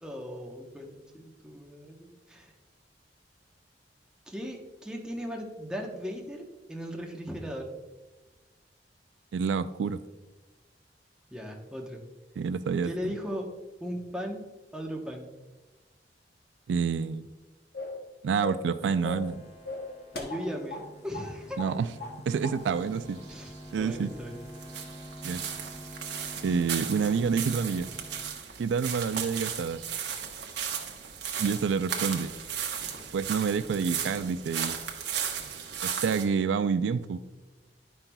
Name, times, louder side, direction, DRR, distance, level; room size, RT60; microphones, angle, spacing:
voice 1, 0.0-2.5 4.3-7.7 11.3-12.0 12.8-13.5 13.8-15.3 20.1-21.6 23.3-24.4, equal, 5° right, 0 dB, 0.9 m, -38 dB
voice 2, 9.3-10.0 12.4-13.1 16.7-17.3 18.2-19.5 21.6-21.9 22.3-23.2 23.7-24.1 25.2-25.4 26.4-27.9 28.6-29.8 31.4-32.3 33.1-34.8 35.8-37.2, right 5 dB, 90° right, 13 dB, 0.3 m, -28 dB
sound 1, 17.7-18.1 18.4-18.7 19.0-19.3 19.7-20.9 21.1-21.3 21.6-22.2 22.4-22.6, left 2 dB, 65° left, 0.8 m, -38 dB
sound 2, 18.9-28.3, equal, 35° left, 1.4 m, -47 dB
sound 3, 22.6-36.2, right 8 dB, 75° right, 0.9 m, -36 dB
10.5 x 5.6 x 2.3 m, 1.2 s
head